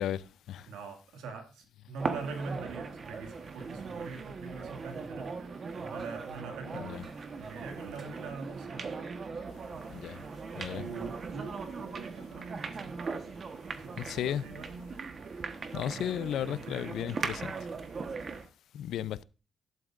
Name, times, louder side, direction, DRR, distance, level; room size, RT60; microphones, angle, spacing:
voice 1, 0.0-0.7 6.7-7.0 9.9-10.2 10.6-10.8 14.0-14.4 15.7-17.5 18.7-19.2, left 10 dB, 75° left, 0.5 m, -34 dB
voice 2, 0.7-9.0 10.7-13.1 13.7-14.9 15.9-16.1 16.4-17.1, right 4 dB, 90° right, 2.1 m, -43 dB
sound 1, 2.0-18.5, right 4 dB, 45° right, 1.2 m, -39 dB
12.5 x 11.0 x 2.5 m
cardioid pair, 90°, 0 cm